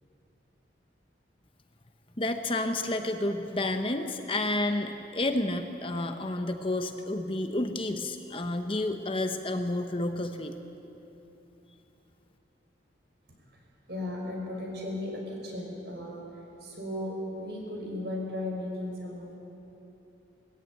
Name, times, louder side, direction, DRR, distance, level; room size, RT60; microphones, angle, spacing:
voice 1, 2.2-10.5, left 2 dB, 30° left, 6 dB, 0.9 m, -30 dB
voice 2, 13.9-16.2 16.6-19.4, left 1 dB, 65° right, 0 dB, 5.2 m, -36 dB
20.5 x 15.0 x 9.2 m, 3.0 s
head